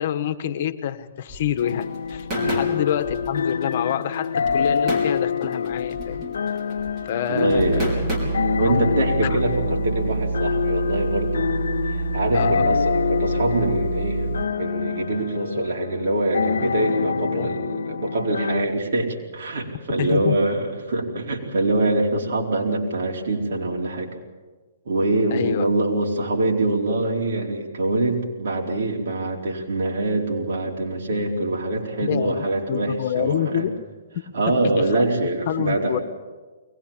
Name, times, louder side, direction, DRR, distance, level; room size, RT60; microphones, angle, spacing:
voice 1, 0.0-6.2 7.0-8.0 8.6-9.0 9.2-9.4 12.3-12.7 17.2-17.5 20.0-20.4 25.3-25.7 32.0-33.7 34.5-35.0 35.5-36.0, left 10 dB, 50° left, 10 dB, 1.4 m, -27 dB
sound 1, 1.3-8.2, right 1 dB, 20° right, 5.0 m, -34 dB
sound 2, 1.6-18.7, left 6 dB, 85° left, 0.6 m, -26 dB
voice 2, 7.3-11.5 11.9-24.1 24.9-33.7 34.3-36.0, right 2 dB, 65° right, -1 dB, 4.5 m, -24 dB
sound 3, 7.6-14.4, right 3 dB, 85° right, 4.0 m, -27 dB
22.5 x 20.0 x 7.4 m, 1.3 s
hypercardioid pair, 150°, 0 cm